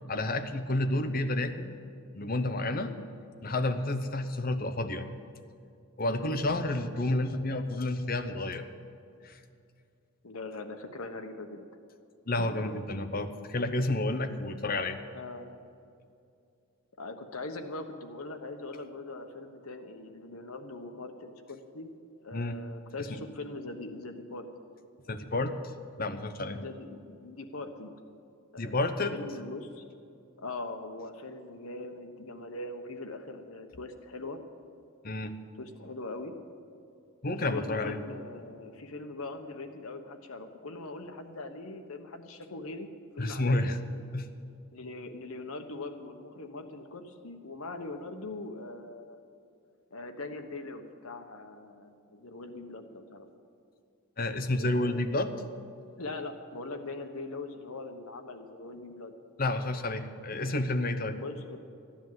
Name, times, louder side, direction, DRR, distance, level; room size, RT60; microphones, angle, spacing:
voice 1, 0.1-1.8 2.2-2.9 3.4-5.1 6.0-8.6 9.2-9.4 12.3-15.0 22.3-22.6 23.1-23.2 25.1-25.5 26.0-26.6 28.6-29.1 35.0-35.3 37.2-38.0 43.2-43.8 44.1-44.3 54.2-55.3 59.4-61.2, left 2 dB, 40° left, 8 dB, 0.8 m, -30 dB
voice 2, 6.1-6.5 10.2-11.6 12.4-12.7 15.1-15.5 17.0-21.9 22.2-24.5 26.5-27.9 28.5-28.8 29.1-29.8 30.4-34.4 35.6-36.3 37.3-42.9 43.2-43.7 43.9-44.0 44.7-49.2 49.9-53.3 54.6-55.0 56.0-59.1 60.3-60.6 61.0-61.6, left 2 dB, 75° left, 6 dB, 1.2 m, -41 dB
14.5 x 10.0 x 7.6 m, 2.5 s
head